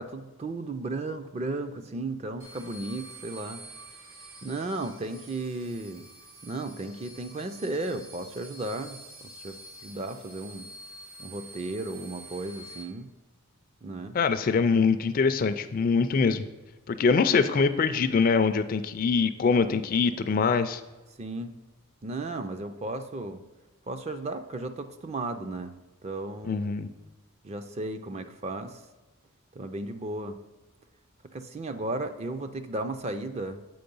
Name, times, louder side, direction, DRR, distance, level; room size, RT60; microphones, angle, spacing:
voice 1, 0.0-3.6 4.4-6.1 6.4-10.7 11.2-13.1 13.8-14.2 21.2-21.5 22.0-23.4 23.9-25.8 26.0-26.7 27.4-28.8 29.6-30.4 31.3-33.6, right 2 dB, 30° right, 9 dB, 0.4 m, -35 dB
sound 1, 2.4-12.8, right 1 dB, 65° right, 1.5 m, -48 dB
voice 2, 14.1-16.4 16.9-20.8 26.4-26.9, left 5 dB, 40° left, 11 dB, 0.3 m, -24 dB
7.8 x 4.5 x 5.3 m, 1.1 s
head